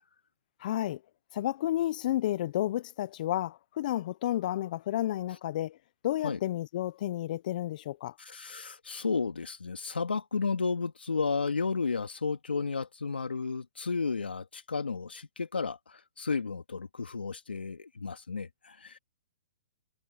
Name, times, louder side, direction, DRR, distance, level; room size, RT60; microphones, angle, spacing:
voice 1, 0.6-1.0 1.3-5.8 6.0-8.1, left 13 dB, 50° left, 1.0 m, -31 dB
voice 2, 8.2-19.0, left 4 dB, 90° left, 2.7 m, -33 dB
hypercardioid pair, 130°, 5 cm